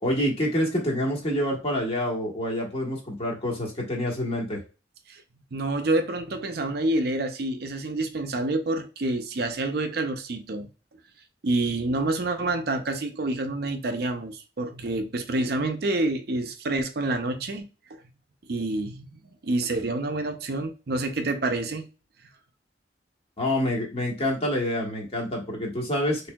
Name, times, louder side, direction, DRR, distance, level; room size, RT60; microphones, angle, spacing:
voice 1, 0.0-4.6 23.4-26.3, left 1 dB, 35° left, 1.4 m, -27 dB
voice 2, 5.5-10.7 11.4-18.0 18.5-21.9, right 2 dB, 60° right, 0.6 m, -28 dB
4.4 x 3.2 x 2.3 m
head